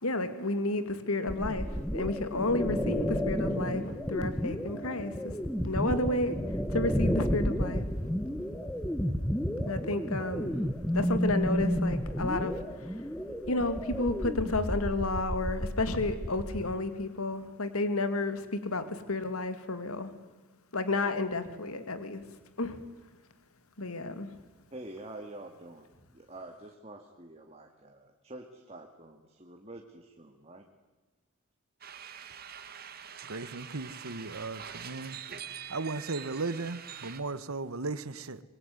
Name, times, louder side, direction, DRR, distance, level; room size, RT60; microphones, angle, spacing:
voice 1, 0.0-5.4 5.6-6.4 6.7-7.8 9.7-10.6 10.9-13.0 13.5-20.1 20.7-22.2 22.6-22.8 23.8-24.3, left 2 dB, 85° left, 2.4 m, -31 dB
sound 1, 1.3-16.7, equal, 5° left, 1.3 m, -32 dB
voice 2, 24.7-25.9 26.1-30.7, right 2 dB, 30° right, 2.0 m, -47 dB
sound 2, 31.8-37.2, right 8 dB, 45° right, 1.8 m, -44 dB
voice 3, 33.3-35.2 35.7-38.4, right 3 dB, 75° right, 1.2 m, -36 dB
25.5 x 21.5 x 9.6 m
head